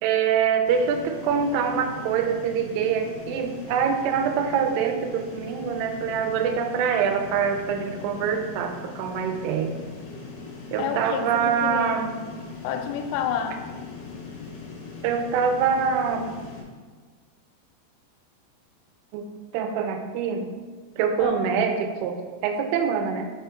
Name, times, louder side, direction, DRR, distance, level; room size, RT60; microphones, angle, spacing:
voice 1, 0.0-9.8 10.7-12.1 15.0-16.3 19.1-19.3 19.5-20.5 21.0-22.2 22.4-23.3, right 7 dB, 85° right, 5 dB, 3.1 m, -24 dB
sound 1, 0.6-16.6, left 4 dB, 70° left, 2.9 m, -40 dB
voice 2, 10.8-12.3 12.6-13.6 21.2-21.4, left 8 dB, 90° left, 5 dB, 3.1 m, -30 dB
6.9 x 3.5 x 4.4 m, 1.5 s
omnidirectional pair, 5.5 m